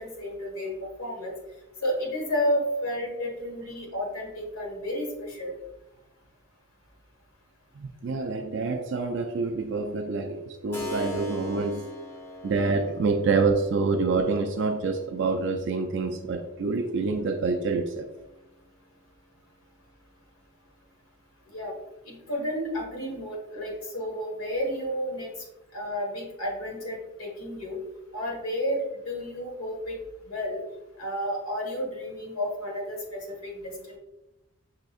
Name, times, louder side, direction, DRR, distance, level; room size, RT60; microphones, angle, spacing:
voice 1, 0.0-1.3 1.8-5.5 21.5-21.7 22.0-25.3 25.7-27.8 28.1-29.9 30.3-30.6 31.0-34.0, equal, 80° left, -1 dB, 1.4 m, -31 dB
voice 2, 7.8-11.9 12.4-18.1, right 4 dB, 55° right, 5 dB, 0.3 m, -27 dB
Keyboard (musical), 10.7-19.3, equal, 10° left, 0.7 m, -44 dB
5.6 x 3.9 x 2.4 m, 0.96 s
head